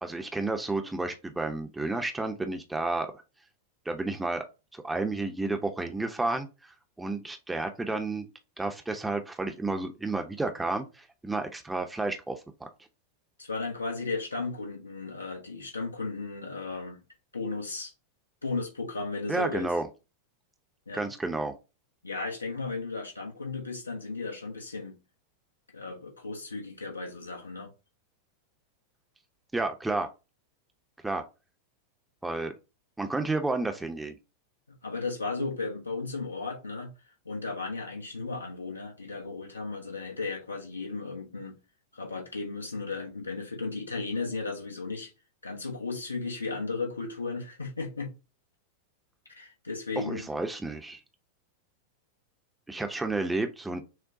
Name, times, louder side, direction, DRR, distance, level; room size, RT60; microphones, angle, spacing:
voice 1, 0.0-3.1 3.9-4.4 4.7-8.3 8.6-12.7 19.3-19.9 20.9-21.5 29.5-30.1 31.0-31.2 32.2-32.5 33.0-34.2 50.0-51.0 52.7-53.8, right 2 dB, 10° right, 0.7 m, -31 dB
voice 2, 13.4-17.0 17.3-17.9 18.4-19.7 20.9-21.1 22.0-25.0 25.7-27.7 34.8-36.9 37.2-41.6 41.9-45.1 45.4-48.1 49.3-50.2, left 3 dB, 80° left, 1.0 m, -35 dB
6.2 x 2.2 x 2.7 m
figure-of-eight pair, 90°, 0 cm